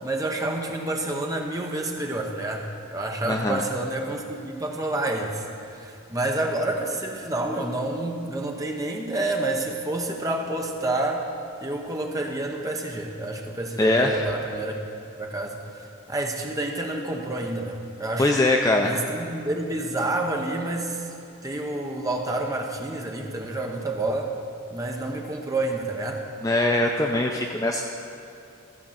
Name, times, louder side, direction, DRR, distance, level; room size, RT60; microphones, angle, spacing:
voice 1, 0.0-11.3 11.6-14.8 15.2-18.5 18.8-21.1 21.4-24.3 24.7-26.2, right 2 dB, 15° right, 1 dB, 0.8 m, -29 dB
voice 2, 3.3-3.6 13.8-14.2 18.2-18.9 26.4-27.8, left 2 dB, 15° left, 2 dB, 0.4 m, -22 dB
13.5 x 5.1 x 7.3 m, 2.5 s
head